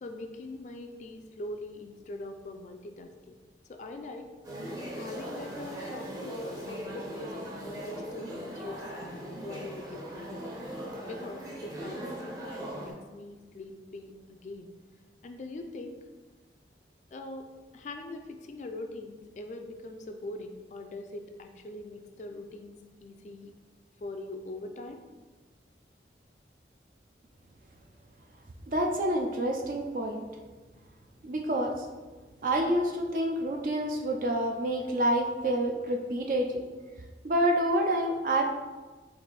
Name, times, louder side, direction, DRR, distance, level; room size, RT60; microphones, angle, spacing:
voice 1, 0.0-3.4 3.7-4.3 4.9-10.4 11.1-14.7 15.2-16.0 17.1-17.5 17.7-23.5 24.0-25.0, left 2 dB, 40° left, 5 dB, 0.3 m, -42 dB
sound 1, 4.4-12.9, right 1 dB, 20° right, 0.7 m, -39 dB
voice 2, 28.7-30.3 31.2-31.9 32.4-36.7 37.2-38.4, right 1 dB, 50° right, 3 dB, 0.4 m, -28 dB
4.7 x 2.5 x 4.0 m, 1.3 s
head